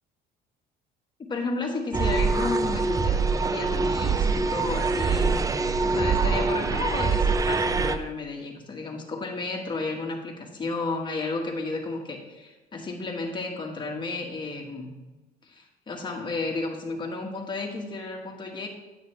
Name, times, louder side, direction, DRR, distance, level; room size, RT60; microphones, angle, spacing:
voice 1, 1.3-5.3 5.8-15.0 15.5-18.7, left 3 dB, 25° left, 0 dB, 1.7 m, -32 dB
sound 1, 1.9-8.0, right 4 dB, 20° right, 0.5 m, -24 dB
9.3 x 8.2 x 3.4 m, 1.1 s
cardioid pair, 110°, 17 cm